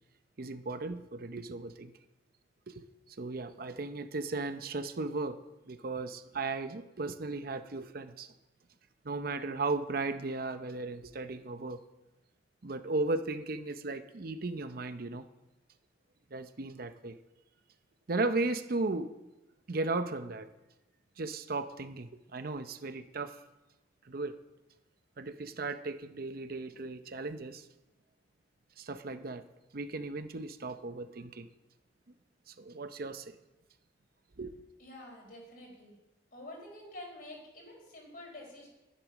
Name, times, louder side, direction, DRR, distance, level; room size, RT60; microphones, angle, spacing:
voice 1, 0.4-1.9 2.7-8.3 9.0-11.8 12.6-15.3 16.3-17.2 18.1-19.1 19.7-20.5 21.2-23.4 24.0-24.3 25.2-27.7 28.8-29.5 29.7-31.5 32.5-33.3 34.4-34.5, right 3 dB, 55° right, 10 dB, 0.7 m, -36 dB
voice 2, 34.8-35.9 36.3-38.7, left 1 dB, 55° left, 0 dB, 4.5 m, -48 dB
11.0 x 10.5 x 6.3 m, 1.0 s
head